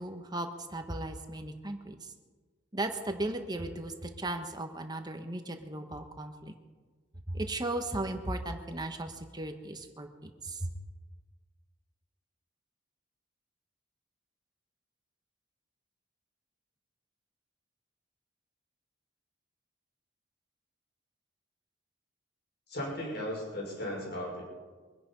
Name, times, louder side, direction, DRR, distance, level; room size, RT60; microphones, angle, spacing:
voice 1, 0.0-2.1 2.7-6.5 7.3-10.7, right 1 dB, 20° right, 6 dB, 1.3 m, -36 dB
voice 2, 22.7-24.4, left 1 dB, 60° left, -2 dB, 5.4 m, -36 dB
24.0 x 10.0 x 5.4 m, 1.4 s
head